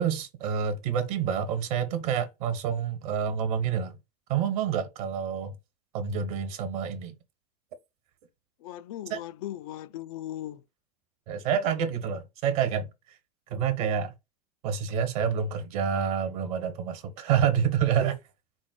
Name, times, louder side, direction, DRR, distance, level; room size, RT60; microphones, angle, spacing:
voice 1, 0.0-4.0 4.3-5.5 5.9-7.1 9.1-9.2 11.3-12.9 13.5-14.1 14.6-18.2, right 8 dB, 60° right, 1.1 m, -28 dB
voice 2, 8.6-10.6, left 13 dB, 55° left, 0.4 m, -38 dB
4.4 x 2.1 x 4.3 m
hypercardioid pair, 90°, 21 cm